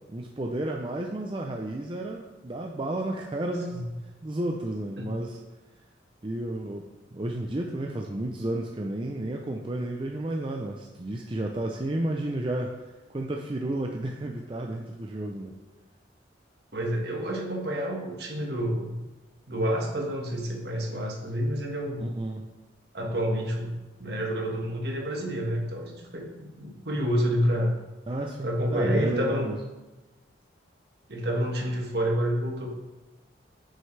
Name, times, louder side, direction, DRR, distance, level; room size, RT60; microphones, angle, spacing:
voice 1, 0.1-3.9 4.2-5.4 6.2-12.7 13.1-15.5 22.0-22.5 28.1-29.6, right 1 dB, 25° right, 1 dB, 0.5 m, -32 dB
voice 2, 16.7-19.0 19.5-22.0 22.9-23.7 24.0-27.7 28.4-29.5 31.1-32.7, equal, 60° right, 0 dB, 1.5 m, -28 dB
9.1 x 6.4 x 3.3 m, 1.1 s
head